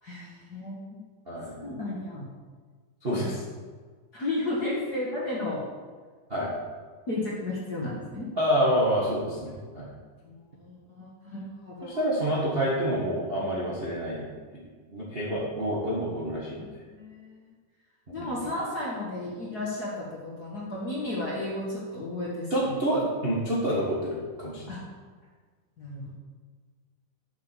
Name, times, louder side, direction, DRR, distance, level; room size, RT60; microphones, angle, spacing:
voice 1, 0.0-1.0 1.6-2.3 3.1-3.3 4.1-5.6 7.1-8.3 10.2-12.0 13.4-13.5 16.6-17.3 18.1-22.7 24.7-24.8 25.8-26.1, left 2 dB, 45° left, -5 dB, 1.3 m, -33 dB
voice 2, 3.0-3.4 6.3-6.5 8.4-9.9 11.8-14.2 14.9-16.6 18.1-18.3 22.5-24.7, equal, 70° right, -5 dB, 0.5 m, -27 dB
7.5 x 7.2 x 7.2 m, 1.5 s
omnidirectional pair, 4.1 m